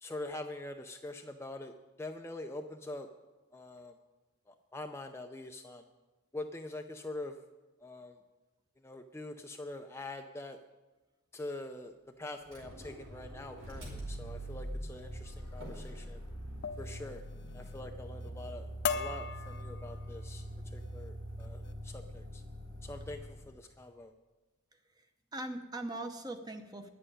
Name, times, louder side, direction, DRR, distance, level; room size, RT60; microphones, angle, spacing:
voice 1, 0.0-3.1 3.5-3.9 4.5-5.9 6.3-7.4 7.8-8.2 8.8-10.6 11.3-16.2 16.8-17.2 17.5-22.4 22.8-24.1, left 2 dB, 10° left, 4 dB, 0.5 m, -44 dB
Motor vehicle (road), 12.4-23.6, equal, 80° right, 5.1 m, -44 dB
sound 1, 15.7-15.9 16.6-17.0 17.3-17.8 18.2-18.5 18.8-20.2 20.8-21.0 21.4-21.7, left 6 dB, 55° left, 0.7 m, -38 dB
voice 2, 24.7-25.1 25.3-26.9, right 1 dB, 20° right, 6 dB, 0.8 m, -41 dB
10.0 x 7.8 x 9.7 m, 1.2 s
head